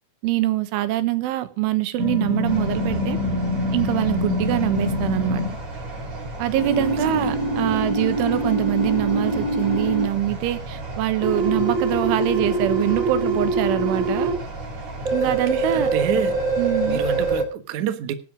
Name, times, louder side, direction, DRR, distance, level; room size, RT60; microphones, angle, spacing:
voice 1, 0.2-3.2 3.7-5.6 6.4-14.3 15.1-15.9 16.6-17.0, right 14 dB, 90° right, 3.8 m, -24 dB
sound 1, 2.0-5.5 6.6-10.1 11.2-14.3 15.1-17.4, right 1 dB, 15° right, 4.7 m, -24 dB
sound 2, 2.4-17.4, right 2 dB, 40° right, 5.8 m, -34 dB
voice 2, 15.7-16.3 16.9-18.1, right 9 dB, 65° right, 2.0 m, -27 dB
18.5 x 9.2 x 5.2 m
omnidirectional pair, 5.4 m